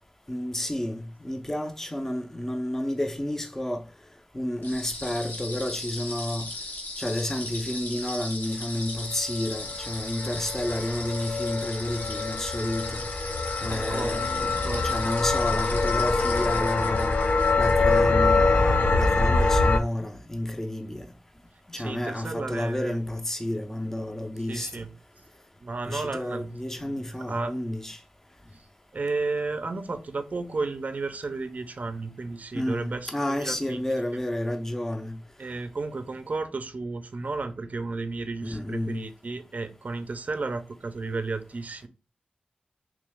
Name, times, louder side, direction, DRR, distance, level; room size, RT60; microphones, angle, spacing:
voice 1, 0.3-3.8 4.3-6.4 7.0-13.0 13.6-17.1 17.6-21.1 21.7-24.9 25.8-28.0 32.5-35.1 38.4-39.0, left 1 dB, 15° left, 0.5 m, -31 dB
sound 1, 4.6-18.0, left 2 dB, 90° left, 1.0 m, -38 dB
sound 2, 9.2-19.8, left 3 dB, 70° left, 0.5 m, -24 dB
voice 2, 13.6-15.0 21.8-23.0 24.5-24.9 25.6-26.5 26.8-27.5 28.9-33.9 34.1-34.2 35.4-41.9, right 3 dB, 55° right, 0.5 m, -33 dB
3.1 x 2.9 x 3.4 m
wide cardioid pair, 65°, 3 cm